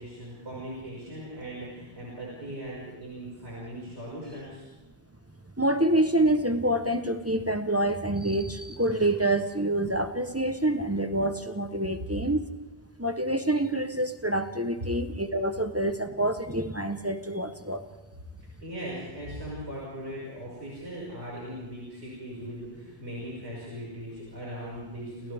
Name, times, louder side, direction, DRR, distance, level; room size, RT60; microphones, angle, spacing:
voice 1, 0.0-4.7 18.6-25.3, equal, 90° right, -6 dB, 6.2 m, -39 dB
voice 2, 5.6-12.4 13.0-17.8, right 1 dB, 15° right, 7 dB, 0.9 m, -27 dB
29.5 x 29.0 x 3.5 m, 1.1 s
omnidirectional pair, 1.1 m